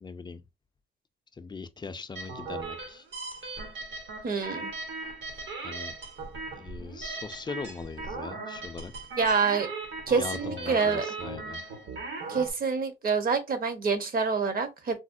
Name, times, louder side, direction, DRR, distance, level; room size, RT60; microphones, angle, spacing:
voice 1, 0.0-0.4 1.4-3.0 5.6-5.9 6.5-8.9 10.2-11.6, left 4 dB, 20° left, 0.4 m, -40 dB
sound 1, 2.2-12.5, right 3 dB, 70° right, 1.2 m, -38 dB
voice 2, 4.2-4.7 9.2-9.7 10.1-11.1 12.3-15.0, right 5 dB, 45° right, 0.8 m, -27 dB
4.1 x 2.0 x 2.5 m
cardioid pair, 90°, 20 cm